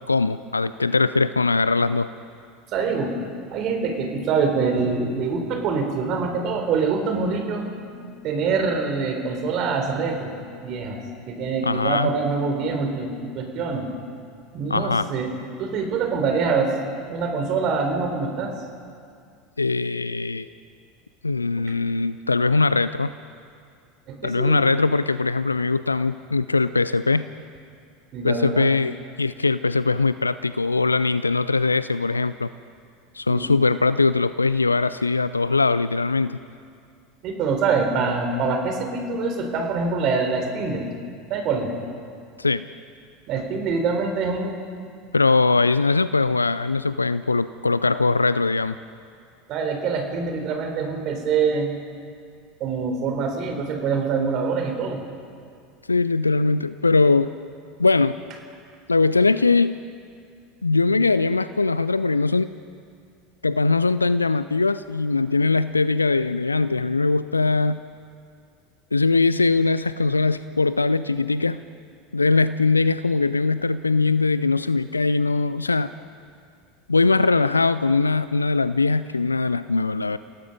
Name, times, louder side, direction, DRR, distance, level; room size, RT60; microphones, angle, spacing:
voice 1, 0.0-2.1 11.6-12.1 14.7-15.1 19.6-20.5 21.2-23.1 24.2-27.3 28.2-32.5 33.1-36.4 42.4-42.6 45.1-48.7 55.9-57.3 57.8-58.2 58.9-59.8 60.6-62.5 63.4-67.8 68.9-71.6 72.1-75.9 76.9-80.2, left 3 dB, 85° left, 14 dB, 0.4 m, -21 dB
voice 2, 2.7-3.1 3.5-10.4 10.6-11.0 11.3-13.9 14.5-15.3 15.6-16.7 17.1-18.6 21.6-21.7 24.1-24.6 28.1-28.7 33.3-33.5 37.2-40.8 41.3-41.7 43.3-44.6 49.5-51.7 52.6-55.0, right 4 dB, 45° right, 4 dB, 3.9 m, -25 dB
28.5 x 17.5 x 5.3 m, 2.3 s
figure-of-eight pair, 75°, 0 cm